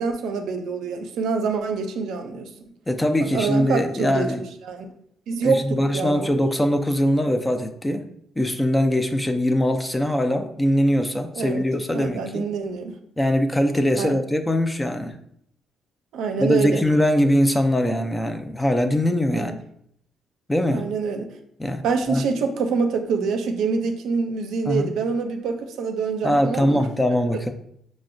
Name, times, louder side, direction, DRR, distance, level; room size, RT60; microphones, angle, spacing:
voice 1, 0.0-2.5 3.3-4.3 4.6-4.9 5.3-6.3 11.4-11.6 11.9-13.0 13.9-14.1 16.1-16.9 19.3-19.6 20.7-21.3 21.8-26.9, right 5 dB, 80° right, 5 dB, 0.5 m, -26 dB
voice 2, 2.9-4.4 5.4-8.1 8.4-12.4 13.2-15.2 16.4-19.6 20.5-20.8 21.6-21.8 22.1-22.2 24.7-24.9 26.2-27.5, left 1 dB, 10° left, 7 dB, 0.4 m, -22 dB
5.7 x 2.1 x 2.5 m, 0.71 s
cardioid pair, 90°, 0 cm